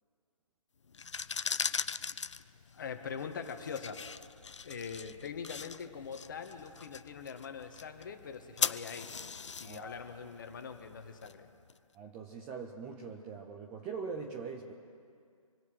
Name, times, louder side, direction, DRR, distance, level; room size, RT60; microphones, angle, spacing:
sound 1, 0.9-11.7, left 6 dB, 55° left, 0.6 m, -40 dB
voice 1, 2.7-4.0 4.6-9.2 9.5-11.5, left 6 dB, 35° left, 7 dB, 1.6 m, -43 dB
voice 2, 9.6-10.0 11.9-14.7, right 5 dB, 5° right, 0 dB, 0.5 m, -42 dB
27.0 x 9.3 x 4.8 m, 2.2 s
figure-of-eight pair, 150°, 18 cm